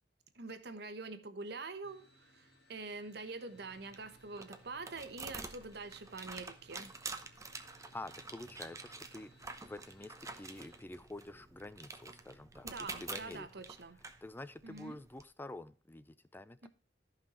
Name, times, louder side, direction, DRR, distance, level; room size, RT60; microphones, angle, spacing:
voice 1, 0.3-6.9 12.6-14.0 14.6-15.0 16.6-16.7, right 3 dB, 65° right, 1.2 m, -45 dB
sound 1, 1.8-10.8, equal, 65° left, 2.4 m, -65 dB
sound 2, 3.5-15.2, right 4 dB, 20° right, 0.9 m, -48 dB
voice 2, 7.7-9.3 9.6-13.5 14.2-16.7, left 2 dB, 10° left, 0.4 m, -48 dB
13.5 x 5.7 x 4.3 m
head